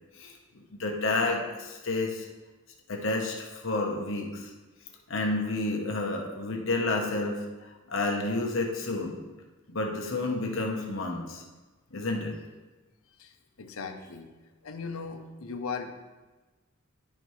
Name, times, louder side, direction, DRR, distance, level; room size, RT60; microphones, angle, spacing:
voice 1, 0.7-2.3 2.9-4.5 5.1-7.4 7.9-9.2 9.7-11.4 11.9-12.3, left 2 dB, 65° left, 1 dB, 1.0 m, -30 dB
voice 2, 13.1-14.3 14.6-15.9, left 5 dB, 85° left, 5 dB, 0.8 m, -38 dB
10.5 x 5.1 x 3.1 m, 1.2 s
head